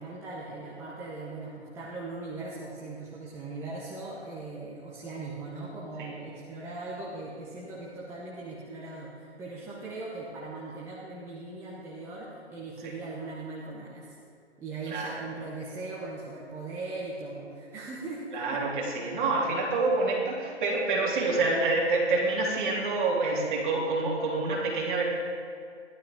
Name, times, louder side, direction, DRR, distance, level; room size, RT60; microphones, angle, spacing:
voice 1, 0.0-14.2 14.6-18.6, right 3 dB, 5° right, -6 dB, 0.9 m, -39 dB
voice 2, 14.8-15.2 18.3-25.0, right 3 dB, 45° right, -3 dB, 3.2 m, -27 dB
15.0 x 12.0 x 3.8 m, 2.3 s
hypercardioid pair, 155°, 35 cm